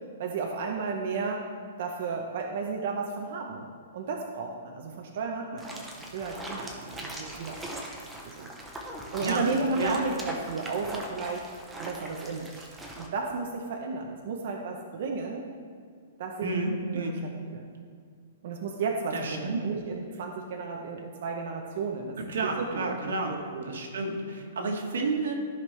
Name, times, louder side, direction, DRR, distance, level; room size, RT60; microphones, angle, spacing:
voice 1, 0.2-1.4 1.8-3.7 3.9-5.8 6.1-7.8 8.2-8.5 9.1-11.4 11.8-12.7 13.0-15.4 16.2-17.2 17.5-17.7 18.4-22.2 22.4-23.8, right 4 dB, 40° right, 1 dB, 0.7 m, -33 dB
sound 1, 5.6-13.1, right 1 dB, 5° right, 0.6 m, -40 dB
voice 2, 9.2-10.0 16.4-17.2 19.1-19.6 22.3-23.3 23.6-25.3, right 3 dB, 85° right, 2 dB, 1.6 m, -30 dB
13.5 x 5.4 x 3.2 m, 2.1 s
hypercardioid pair, 180°, 0 cm